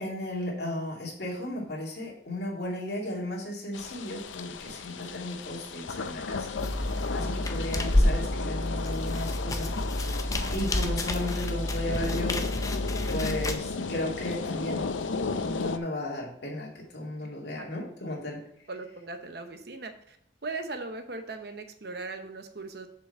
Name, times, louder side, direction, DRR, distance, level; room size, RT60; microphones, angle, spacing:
voice 1, 0.0-6.6 6.8-9.8 10.2-12.5 13.1-14.9 15.4-18.4, left 1 dB, 60° left, -3 dB, 2.5 m, -35 dB
sound 1, 3.7-15.8, left 4 dB, 90° left, 0.6 m, -35 dB
sound 2, 6.6-13.6, left 1 dB, 20° left, 0.5 m, -29 dB
voice 2, 18.7-20.2 20.4-22.9, right 3 dB, 55° right, 7 dB, 0.9 m, -39 dB
6.9 x 5.2 x 5.5 m, 0.70 s
head